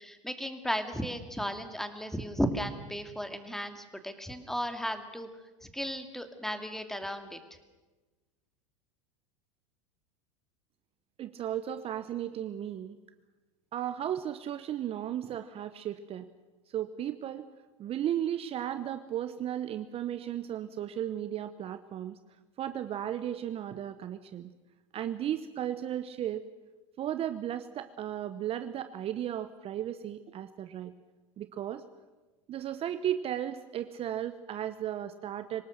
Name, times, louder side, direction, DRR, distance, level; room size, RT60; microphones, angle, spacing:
voice 1, 0.0-5.3 5.6-7.4, equal, ahead, 8 dB, 2.3 m, -35 dB
voice 2, 11.2-13.0 13.7-16.3 16.7-17.5 17.8-22.2 22.6-24.5 24.9-26.4 27.0-30.9 31.4-31.8 32.5-35.6, right 11 dB, 35° right, 11 dB, 1.0 m, -35 dB
25.5 x 18.5 x 6.6 m, 1.2 s
hypercardioid pair, 90°, 16 cm